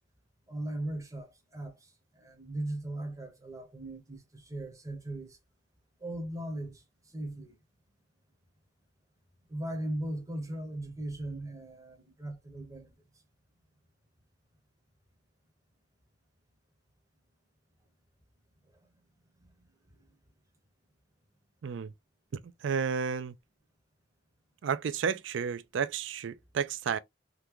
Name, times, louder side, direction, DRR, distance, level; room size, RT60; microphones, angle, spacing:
voice 1, 0.5-1.3 1.5-1.8 2.2-5.4 6.0-6.8 7.1-7.5 9.5-12.9 19.4-19.5, right 1 dB, 20° right, 1.0 m, -38 dB
voice 2, 21.6-21.9 22.4-23.3 24.6-27.0, right 6 dB, 90° right, 0.4 m, -32 dB
3.7 x 2.2 x 3.0 m
head